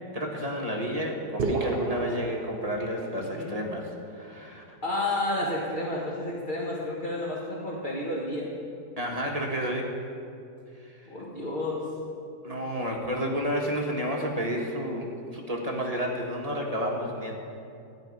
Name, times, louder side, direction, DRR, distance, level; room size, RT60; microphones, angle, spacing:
voice 1, 0.1-4.8 9.0-9.9 10.8-11.1 12.4-17.4, equal, 25° right, 0 dB, 1.4 m, -31 dB
sound 1, 1.4-3.3, right 3 dB, 45° right, 0.9 m, -31 dB
voice 2, 3.2-3.6 4.8-8.5 11.1-11.9, left 1 dB, 30° left, -5 dB, 1.6 m, -31 dB
14.0 x 5.4 x 9.5 m, 2.6 s
omnidirectional pair, 1.8 m